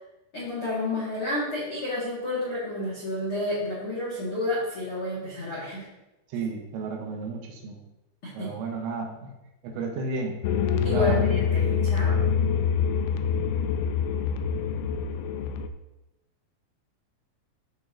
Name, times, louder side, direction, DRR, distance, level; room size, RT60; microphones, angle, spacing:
voice 1, 0.3-5.8 8.2-8.5 10.8-12.2, left 1 dB, 65° left, -7 dB, 1.3 m, -30 dB
voice 2, 6.3-7.8 8.3-9.3 9.6-10.4 10.9-11.2, right 4 dB, 80° right, 2 dB, 3.6 m, -32 dB
sound 1, 10.4-15.7, left 7 dB, 85° left, 2.6 m, -25 dB
14.5 x 6.4 x 2.8 m, 0.95 s
omnidirectional pair, 6.0 m